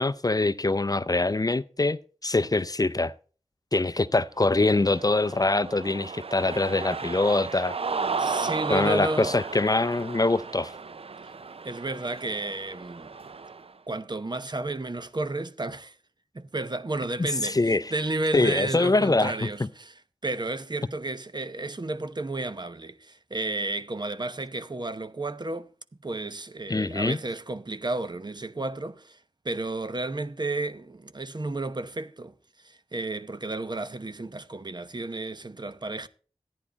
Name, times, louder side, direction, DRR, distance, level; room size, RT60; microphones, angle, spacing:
voice 1, 0.0-3.1 3.7-7.8 8.7-10.7 17.4-17.9 18.3-19.5 26.7-27.2, left 2 dB, 35° left, 0.6 m, -24 dB
Cheering, 4.5-13.7, right 4 dB, 65° right, 0.5 m, -34 dB
voice 2, 8.2-9.4 11.6-13.1 13.9-15.9 16.3-19.9 20.2-25.7 26.0-29.2 29.4-32.3 32.6-36.1, right 2 dB, 40° right, 0.9 m, -32 dB
14.5 x 9.8 x 4.1 m
wide cardioid pair, 55°, 11 cm